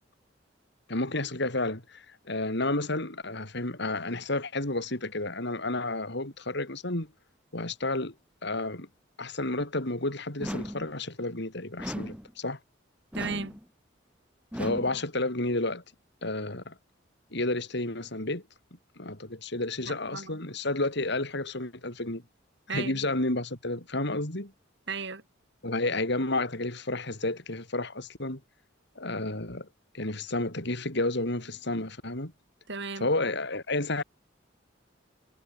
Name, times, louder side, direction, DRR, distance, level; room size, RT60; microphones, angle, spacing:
voice 1, 0.9-7.1 7.5-8.1 8.4-8.9 9.2-12.6 14.5-15.8 16.2-16.7 17.3-18.4 19.0-22.2 22.7-24.5 25.6-28.4 29.0-29.7 29.9-32.3 33.0-34.0, left 2 dB, 65° left, 4.4 m, -31 dB
sound 1, 10.4-10.9 11.8-12.3 13.1-13.6 14.5-15.0, equal, 5° right, 3.6 m, -36 dB
voice 2, 13.1-13.6 19.9-20.4 22.7-23.1 24.9-25.2 32.7-33.1, right 4 dB, 65° right, 4.8 m, -35 dB
head